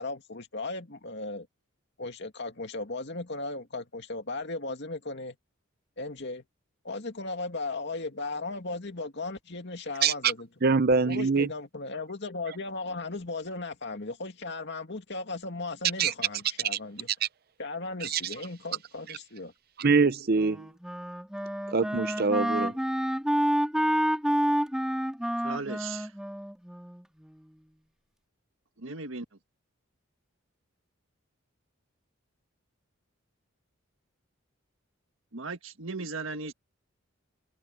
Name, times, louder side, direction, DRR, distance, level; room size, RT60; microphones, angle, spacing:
voice 1, 0.0-1.5 2.0-5.4 6.0-6.4 6.8-10.5 11.0-17.1 17.6-19.5, left 3 dB, 55° left, 2.4 m, -36 dB
voice 2, 10.6-11.5 16.0-16.1 16.7-16.8 17.2-17.3 18.0-18.2 19.8-20.7 21.7-22.7, right 4 dB, 45° right, 0.6 m, -24 dB
Wind instrument woodwind instrument, 20.3-27.5, equal, 5° right, 2.0 m, -29 dB
voice 3, 25.4-26.1 28.8-29.3 35.3-36.5, right 3 dB, 70° right, 1.7 m, -36 dB
head